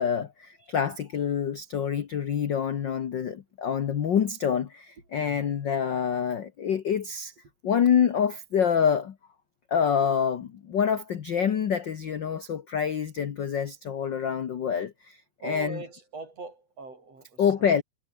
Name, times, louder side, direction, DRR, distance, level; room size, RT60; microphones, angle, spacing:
voice 1, 0.0-7.3 7.6-9.1 9.7-15.2 15.4-15.8 17.4-17.8, left 7 dB, 55° left, 1.2 m, -26 dB
voice 2, 5.3-5.6 15.4-17.7, right 3 dB, 50° right, 7.1 m, -41 dB
omnidirectional pair, 3.6 m